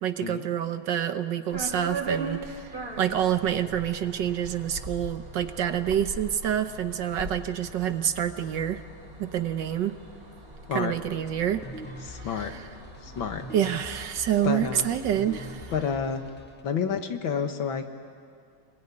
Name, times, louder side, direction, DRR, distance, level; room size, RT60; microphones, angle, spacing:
voice 1, 0.0-2.7 3.0-8.8 9.2-10.0 10.7-11.7 12.2-12.7 13.5-15.7, right 10 dB, 65° right, 10 dB, 1.4 m, -27 dB
sound 1, 1.5-15.7, right 2 dB, 25° right, 3.6 m, -40 dB
sound 2, 11.4-16.6, equal, 5° left, 1.8 m, -44 dB
voice 2, 12.0-12.5 13.0-13.4 14.4-14.9 15.7-16.2 16.6-17.9, left 6 dB, 70° left, 6 dB, 2.2 m, -29 dB
27.0 x 21.5 x 9.8 m, 2.3 s
omnidirectional pair, 2.3 m